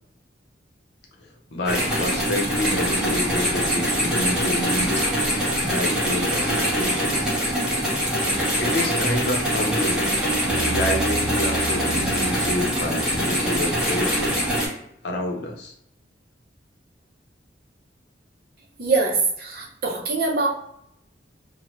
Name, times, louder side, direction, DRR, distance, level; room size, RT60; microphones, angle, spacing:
voice 1, 1.5-5.1 5.6-7.4 8.6-10.1 10.6-14.5 15.0-15.7, left 1 dB, 65° left, 1 dB, 0.6 m, -28 dB
sound 1, 1.7-14.7, equal, 5° right, 0.8 m, -23 dB
sound 2, 10.5-13.6, right 2 dB, 35° left, 0.9 m, -34 dB
voice 2, 18.8-20.5, right 3 dB, 55° right, 1 dB, 0.6 m, -23 dB
3.1 x 2.1 x 2.8 m, 0.75 s
head